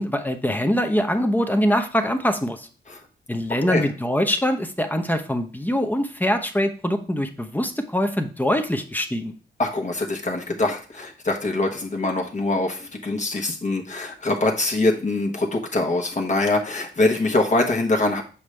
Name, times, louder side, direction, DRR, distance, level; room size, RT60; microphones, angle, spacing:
voice 1, 0.0-2.7 3.3-9.3, equal, 10° left, 6 dB, 0.8 m, -23 dB
voice 2, 9.6-18.2, left 2 dB, 40° left, 1 dB, 1.2 m, -23 dB
7.1 x 5.0 x 3.3 m, 0.37 s
cardioid pair, 80°, 19 cm